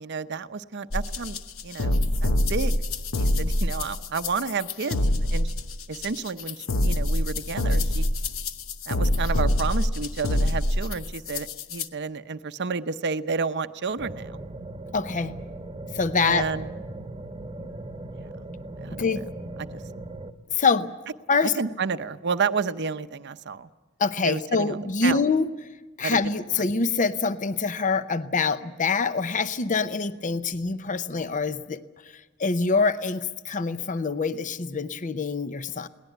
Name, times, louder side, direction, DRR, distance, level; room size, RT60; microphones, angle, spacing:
voice 1, 0.0-1.4 1.6-2.8 3.2-5.5 5.9-8.1 8.9-14.4 16.2-16.7 18.8-19.2 19.6-19.8 21.6-23.7 24.2-25.2 26.0-26.2, right 5 dB, 55° right, 11 dB, 0.7 m, -31 dB
sound 1, 0.9-11.9, left 1 dB, 70° left, 1.0 m, -25 dB
sound 2, 14.0-20.3, right 2 dB, 20° right, 1.1 m, -38 dB
voice 2, 14.9-15.3 15.9-16.5 18.9-19.3 20.5-20.9 21.3-21.5 24.0-25.5 26.0-31.8 32.4-35.9, left 4 dB, 35° left, 13 dB, 0.7 m, -25 dB
22.0 x 18.5 x 9.1 m, 1.2 s
head